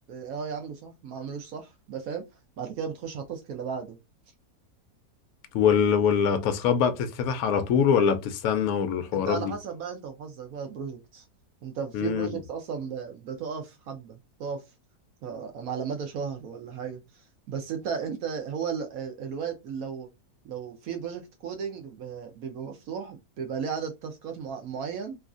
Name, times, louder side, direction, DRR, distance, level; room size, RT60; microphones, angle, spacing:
voice 1, 0.1-2.2 2.6-4.0 9.1-11.2 11.6-14.6 15.2-17.0 17.5-20.1 20.4-25.2, right 6 dB, 70° right, 1.0 m, -35 dB
voice 2, 5.5-9.5 11.9-12.4, left 7 dB, 70° left, 1.0 m, -24 dB
3.1 x 2.5 x 2.4 m
omnidirectional pair, 1.7 m